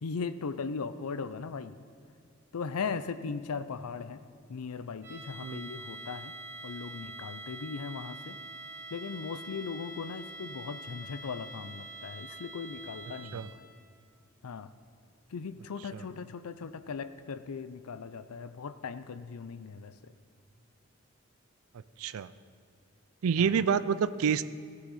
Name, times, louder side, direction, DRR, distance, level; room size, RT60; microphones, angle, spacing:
voice 1, 0.0-1.8 2.5-4.2 4.5-6.3 6.6-8.4 8.9-13.6 14.4-14.7 15.3-20.1 23.4-23.5, left 5 dB, 90° left, 12 dB, 0.5 m, -38 dB
sound 1, 5.0-13.7, right 2 dB, 45° right, 3.4 m, -45 dB
voice 2, 22.0-22.3 23.2-24.4, right 7 dB, 80° right, 15 dB, 0.4 m, -28 dB
16.0 x 9.4 x 4.2 m, 2.4 s
head